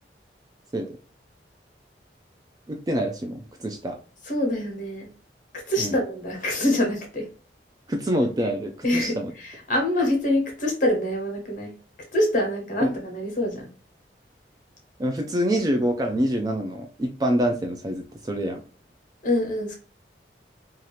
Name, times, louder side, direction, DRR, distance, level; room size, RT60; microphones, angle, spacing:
voice 1, 2.7-4.0 5.8-5.9 7.9-9.3 12.8-12.9 15.0-18.6, equal, 20° right, 0.3 m, -26 dB
voice 2, 4.2-5.1 5.5-7.3 8.8-11.8 12.1-13.7 19.2-19.8, left 1 dB, 45° left, 1.0 m, -25 dB
2.7 x 2.4 x 3.0 m
head